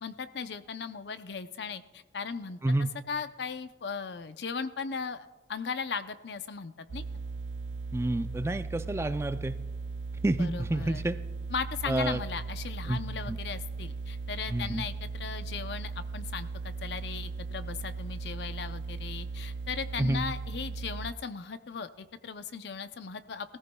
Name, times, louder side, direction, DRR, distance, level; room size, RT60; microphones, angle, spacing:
voice 1, 0.0-2.6 3.1-7.0 10.4-11.0 11.5-23.6, left 5 dB, 75° left, 11 dB, 0.6 m, -37 dB
sound 1, 6.9-21.1, right 4 dB, 85° right, 0.4 m, -38 dB
voice 2, 7.9-9.6 10.2-11.2 11.9-12.2 12.9-13.0 13.3-13.4 14.5-14.8 20.0-20.2, right 1 dB, 15° right, 11 dB, 0.4 m, -29 dB
20.5 x 14.5 x 2.3 m, 1.1 s
head